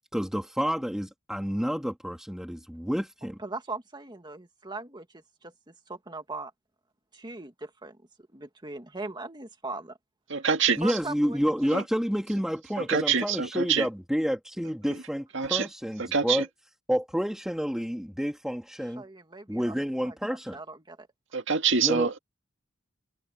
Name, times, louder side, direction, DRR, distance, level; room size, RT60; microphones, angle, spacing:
voice 1, 0.1-3.4 10.8-16.5 16.9-19.0 19.5-20.6 21.8-22.1, equal, 5° right, 2.0 m, -29 dB
voice 2, 3.2-5.5 5.9-6.5 7.1-8.0 8.3-10.0 10.8-11.7 19.0-19.8 20.0-21.1, right 3 dB, 20° right, 2.0 m, -40 dB
voice 3, 10.3-10.8 11.7-11.8 12.9-13.9 15.3-15.7 16.0-16.4 21.3-22.2, right 6 dB, 65° right, 2.0 m, -25 dB
head